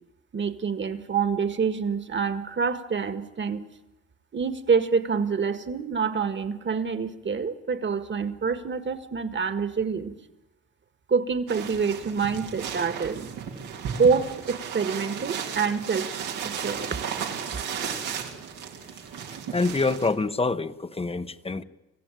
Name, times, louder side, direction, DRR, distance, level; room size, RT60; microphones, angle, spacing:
voice 1, 0.3-3.6 4.3-10.2 11.1-13.3 14.0-16.1 16.4-17.0, right 5 dB, 40° right, 11 dB, 1.8 m, -26 dB
sound 1, 11.5-20.1, right 7 dB, 85° right, 2.8 m, -34 dB
voice 2, 19.5-21.6, left 3 dB, 20° left, 12 dB, 0.9 m, -26 dB
26.0 x 15.5 x 9.1 m, 1.0 s
cardioid pair, 90°, 30 cm